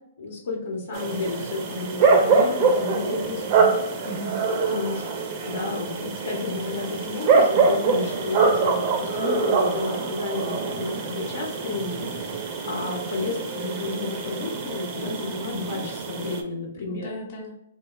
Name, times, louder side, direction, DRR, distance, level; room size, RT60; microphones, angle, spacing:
voice 1, 0.2-3.4 4.6-5.1 5.4-12.1 12.4-17.1, left 3 dB, 75° left, -2 dB, 1.0 m, -31 dB
sound 1, 0.9-16.4, right 4 dB, 40° right, 0.6 m, -24 dB
voice 2, 3.2-4.4 16.8-17.6, right 1 dB, 45° left, -1 dB, 1.2 m, -37 dB
3.3 x 2.4 x 3.0 m, 0.82 s
hypercardioid pair, 135°, 0 cm